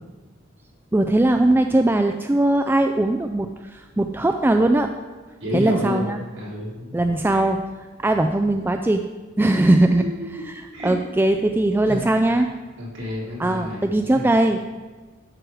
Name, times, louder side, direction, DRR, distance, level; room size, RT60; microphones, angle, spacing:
voice 1, 0.9-4.9 5.5-6.2 6.9-9.0 9.4-12.5 13.4-14.6, right 1 dB, 10° right, 5 dB, 0.3 m, -20 dB
voice 2, 5.4-6.9 7.3-7.4 9.6-10.2 10.7-10.9 11.9-12.0 12.8-13.9 14.1-14.2, left 1 dB, 70° right, -6 dB, 3.5 m, -30 dB
12.5 x 4.8 x 6.2 m, 1.3 s
head